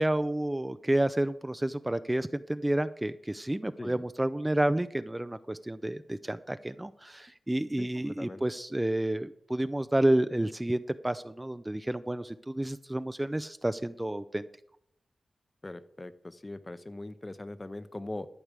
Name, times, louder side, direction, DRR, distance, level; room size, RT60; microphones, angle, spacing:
voice 1, 0.0-14.5, right 1 dB, 15° right, 12 dB, 0.4 m, -30 dB
voice 2, 7.8-8.4 15.6-18.3, left 2 dB, 25° left, 13 dB, 0.7 m, -41 dB
12.5 x 4.8 x 8.1 m, 0.72 s
wide cardioid pair, 100°, 0 cm